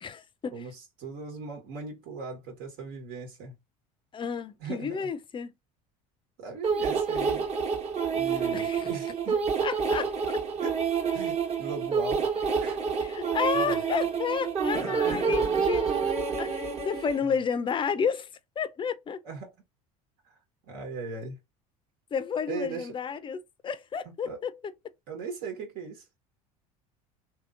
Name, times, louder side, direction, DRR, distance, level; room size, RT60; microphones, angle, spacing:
voice 1, 0.0-0.7 4.1-5.5 8.5-8.9 9.6-10.4 13.0-15.9 16.4-18.3 18.6-19.2 22.1-24.7, left 6 dB, 25° left, 0.5 m, -31 dB
voice 2, 0.5-3.6 4.6-5.1 6.4-7.5 8.1-9.7 10.6-10.8 11.1-12.3 12.6-12.8 13.5-13.8 14.5-15.4 19.2-19.5 20.2-20.4 20.7-21.4 22.5-22.9 24.2-24.4 25.1-26.0, right 4 dB, 65° right, 1.3 m, -39 dB
sound 1, 6.6-17.2, right 6 dB, 35° right, 1.2 m, -28 dB
2.9 x 2.8 x 2.5 m
hypercardioid pair, 80°, 19 cm